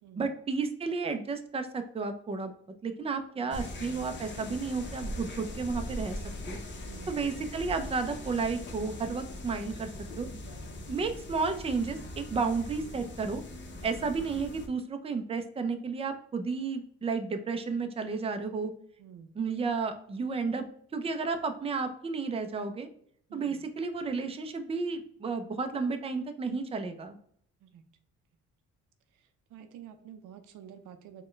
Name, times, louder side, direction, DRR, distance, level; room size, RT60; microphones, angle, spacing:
voice 1, 0.2-2.5 2.8-6.2 6.5-6.6 7.1-9.9 10.2-10.3 10.9-13.4 13.8-18.7 19.3-20.6 20.9-22.9 23.3-27.2, right 4 dB, 20° right, 8 dB, 0.4 m, -32 dB
sound 1, 3.5-14.7, left 1 dB, 40° left, 0.8 m, -41 dB
voice 2, 6.9-7.2 13.8-14.1 19.0-19.3 23.3-23.6 27.6-27.8 29.1-31.2, right 9 dB, 90° right, 8 dB, 0.5 m, -50 dB
4.2 x 2.2 x 3.1 m, 0.63 s
cardioid pair, 90°, 30 cm